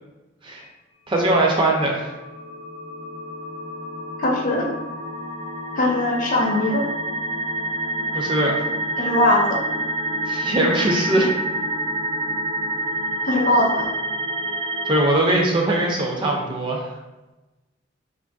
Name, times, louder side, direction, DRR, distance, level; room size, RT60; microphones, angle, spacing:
voice 1, 1.1-2.1 8.1-8.6 10.2-11.3 14.6-16.9, right 1 dB, 25° right, 0 dB, 0.4 m, -21 dB
sound 1, 1.9-15.0, right 1 dB, 70° right, 0.8 m, -28 dB
voice 2, 4.2-4.7 5.8-6.8 9.0-9.6 13.2-13.9, left 1 dB, 40° left, 0 dB, 0.4 m, -20 dB
3.1 x 2.5 x 2.3 m, 1.1 s
head